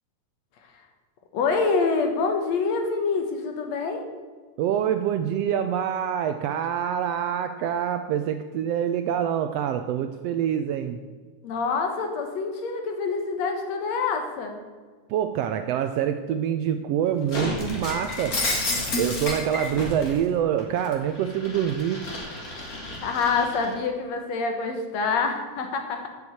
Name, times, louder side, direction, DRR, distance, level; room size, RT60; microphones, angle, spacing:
voice 1, 1.3-4.0 11.4-14.6 23.0-26.1, left 4 dB, 65° left, 5 dB, 2.4 m, -26 dB
voice 2, 4.6-11.0 15.1-18.4 19.0-22.0, right 9 dB, 85° right, 8 dB, 1.4 m, -26 dB
Shatter, 17.3-20.2 20.6-23.7, left 2 dB, 35° left, 2.0 m, -31 dB
8.0 x 7.0 x 8.5 m, 1.4 s
omnidirectional pair, 3.4 m